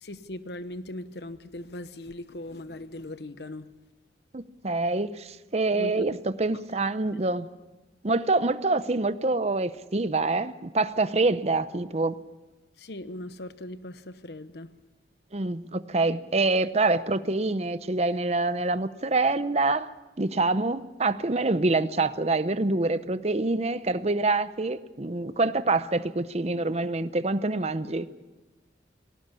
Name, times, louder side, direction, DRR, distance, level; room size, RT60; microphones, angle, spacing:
voice 1, 0.0-3.7 5.7-5.9 12.8-14.7, left 1 dB, 65° left, 1.1 m, -39 dB
voice 2, 4.3-7.5 8.0-12.2 15.3-19.9 20.2-28.1, right 3 dB, 35° right, 0.8 m, -26 dB
19.5 x 17.5 x 8.4 m
head